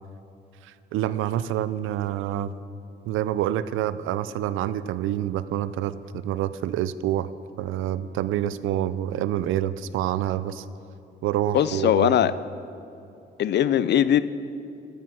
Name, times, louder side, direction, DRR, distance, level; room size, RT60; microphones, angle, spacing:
voice 1, 0.6-2.5 3.1-7.3 7.6-10.6 11.2-12.2, right 12 dB, 85° right, 15 dB, 0.5 m, -27 dB
voice 2, 11.5-12.3 13.4-14.2, left 10 dB, 60° left, 15 dB, 0.5 m, -20 dB
13.5 x 9.3 x 6.1 m, 2.8 s
cardioid pair, 90°, 20 cm